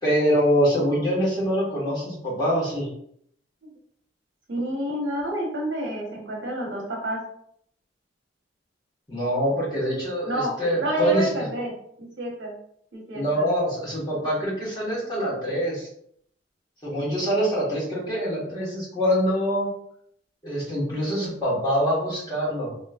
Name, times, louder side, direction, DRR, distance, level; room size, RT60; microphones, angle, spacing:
voice 1, 0.0-2.9 9.1-11.3 13.1-15.9 16.8-19.7 20.4-22.7, equal, 25° left, -8 dB, 1.5 m, -24 dB
voice 2, 4.5-7.2 10.2-10.5 10.8-11.7 12.0-12.5 12.9-13.5, equal, 75° right, -2 dB, 1.1 m, -29 dB
3.0 x 3.0 x 2.4 m, 0.68 s
head